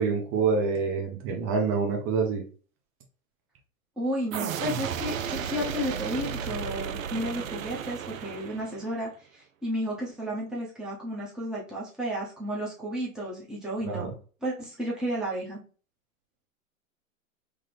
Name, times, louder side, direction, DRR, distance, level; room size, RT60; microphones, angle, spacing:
voice 1, 0.0-2.4 13.9-14.1, right 5 dB, 30° right, 2 dB, 0.8 m, -26 dB
voice 2, 4.0-14.1 14.4-15.6, equal, ahead, -5 dB, 0.8 m, -32 dB
sound 1, 4.3-9.0, right 8 dB, 70° right, 0.5 m, -34 dB
3.5 x 2.1 x 3.4 m, 0.38 s
figure-of-eight pair, 100°, 42 cm